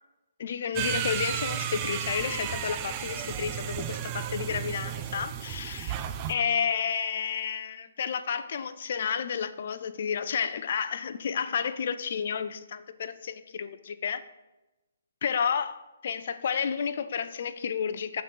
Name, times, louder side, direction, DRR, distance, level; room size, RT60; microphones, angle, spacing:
voice 1, 0.4-6.0 6.3-14.2 15.2-18.2, left 7 dB, 50° left, 12 dB, 0.4 m, -31 dB
sound 1, 0.7-6.3, right 10 dB, 20° right, 0.4 m, -33 dB
8.1 x 3.9 x 5.4 m, 1.0 s
hypercardioid pair, 170°, 0 cm